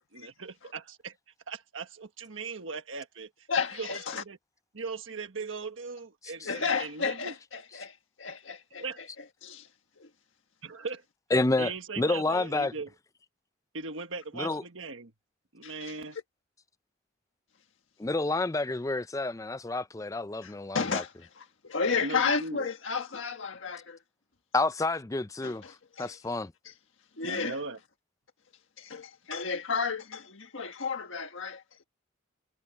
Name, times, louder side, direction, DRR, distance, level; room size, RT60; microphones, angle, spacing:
voice 1, 0.1-1.2 1.5-3.5 3.7-4.4 4.7-7.3 8.8-9.0 10.6-11.0 11.6-12.9 13.7-15.1 15.5-16.2 21.9-22.7 27.2-27.8, right 4 dB, 80° right, 1.4 m, -39 dB
voice 2, 3.5-4.2 6.4-8.8 9.4-9.7 10.0-10.1 15.6-15.9 20.4-24.0 25.4-26.2 26.6-26.7 27.2-27.6 28.8-31.8, left 5 dB, 75° left, 1.5 m, -33 dB
voice 3, 11.3-11.7 12.0-12.7 14.4-14.6 18.0-21.0 24.5-25.6 26.0-26.5, left 2 dB, 15° left, 0.4 m, -29 dB
head